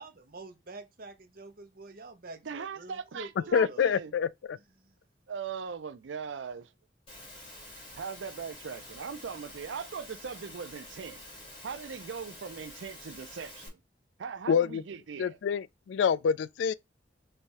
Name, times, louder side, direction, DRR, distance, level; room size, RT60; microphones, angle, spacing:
voice 1, 0.0-3.9 4.8-4.9, right 2 dB, 55° right, 0.9 m, -47 dB
voice 2, 2.4-4.1 5.3-6.7 7.9-11.2 11.6-13.8 14.2-15.4, right 6 dB, 90° right, 0.5 m, -40 dB
voice 3, 3.5-4.6 14.5-14.8 15.2-16.7, left 7 dB, 80° left, 0.3 m, -27 dB
Engine / Mechanisms, 7.1-13.7, left 1 dB, 30° left, 2.3 m, -48 dB
3.5 x 3.4 x 4.1 m
head